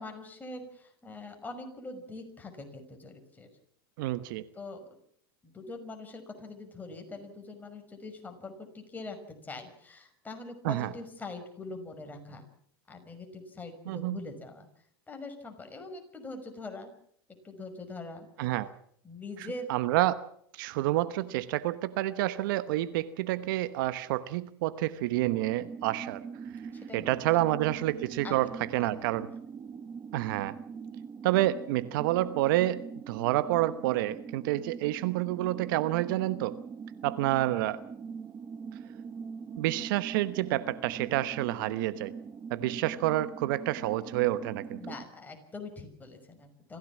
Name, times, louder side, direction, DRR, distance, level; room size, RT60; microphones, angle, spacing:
voice 1, 0.0-3.5 4.5-4.8 5.4-9.2 9.4-12.4 12.9-14.7 15.1-16.9 17.4-18.3 19.0-19.7 26.7-27.1 27.6-27.7 28.2-28.4 28.7-28.9 29.1-29.2 44.8-46.8, left 3 dB, 15° left, 4 dB, 5.8 m, -43 dB
voice 2, 4.0-4.5 10.6-10.9 13.9-14.2 18.4-18.7 19.7-20.2 20.5-26.2 26.9-29.3 30.1-30.6 31.2-36.5 37.0-37.8 39.6-42.1 42.5-44.8, right 15 dB, 60° right, 14 dB, 1.1 m, -28 dB
sound 1, 25.1-45.0, right 6 dB, 25° right, 0.9 m, -43 dB
26.0 x 16.0 x 7.4 m, 0.66 s
hypercardioid pair, 100°, 12 cm